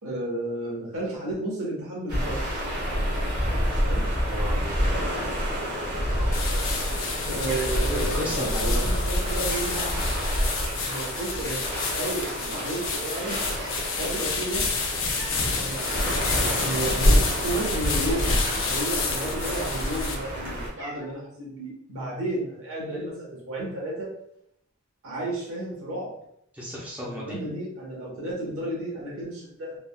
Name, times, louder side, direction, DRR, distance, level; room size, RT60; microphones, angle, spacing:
voice 1, 0.0-2.4 3.7-4.1 7.3-10.0 10.8-13.4 14.0-14.7 15.5-15.9 16.6-24.1 25.0-26.1 27.0-29.8, right 1 dB, 80° right, -4 dB, 1.1 m, -32 dB
sound 1, 2.1-20.7, equal, 45° right, 1.0 m, -29 dB
voice 2, 4.1-4.9 7.9-9.0 26.5-27.4, equal, 5° right, -5 dB, 0.5 m, -34 dB
Cat, 6.0-6.7 7.0-7.2 7.5-8.5 8.9-9.1 9.4-10.0 11.2-11.6 12.4-12.5 12.7-13.9 14.2-14.4 15.0-15.4 15.9-16.0 16.2-16.8 17.2-18.8 19.6-20.2 20.5-21.1, right 1 dB, 60° right, 1.4 m, -43 dB
sound 2, 6.3-20.1, left 2 dB, 70° left, 0.5 m, -28 dB
3.4 x 2.2 x 2.2 m, 0.74 s
head